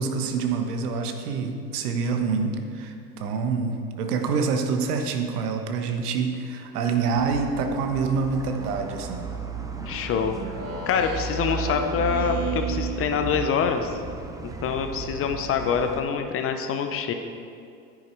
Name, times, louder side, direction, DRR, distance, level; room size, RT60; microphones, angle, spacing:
voice 1, 0.0-9.2, right 5 dB, 65° right, 5 dB, 1.4 m, -26 dB
sound 1, 7.2-16.0, right 5 dB, 5° right, 0.7 m, -34 dB
voice 2, 9.9-10.4 10.9-14.0 14.4-17.1, left 7 dB, 25° left, 6 dB, 0.7 m, -25 dB
Speech synthesizer, 10.3-13.9, right 3 dB, 30° right, 1.5 m, -34 dB
10.0 x 9.8 x 4.6 m, 2.4 s
hypercardioid pair, 100°, 49 cm